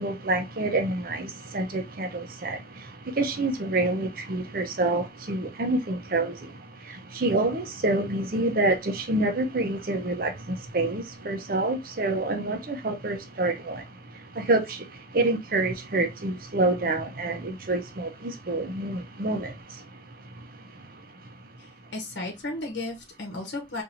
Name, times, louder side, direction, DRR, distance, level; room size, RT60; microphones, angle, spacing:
voice 1, 0.0-13.9 14.1-19.8 20.4-20.5, right 2 dB, 50° right, 0.7 m, -27 dB
voice 2, 21.6-23.8, left 2 dB, 85° left, 0.9 m, -34 dB
4.3 x 2.6 x 2.5 m
head